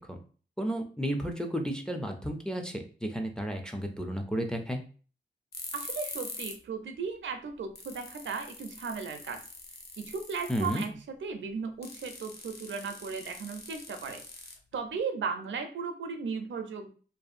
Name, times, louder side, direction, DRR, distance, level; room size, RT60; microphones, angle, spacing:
voice 1, 0.6-4.8 10.5-10.9, equal, 5° left, 4 dB, 0.4 m, -32 dB
sound 1, 5.5-6.6 6.9-7.0 7.5-7.6 7.7-11.0 11.8-15.0, left 3 dB, 55° left, 0.6 m, -44 dB
voice 2, 5.7-9.4 10.0-10.9 11.2-14.2 14.7-16.9, right 5 dB, 80° right, 6 dB, 0.5 m, -36 dB
2.6 x 2.4 x 2.4 m, 0.40 s
wide cardioid pair, 95°, 19 cm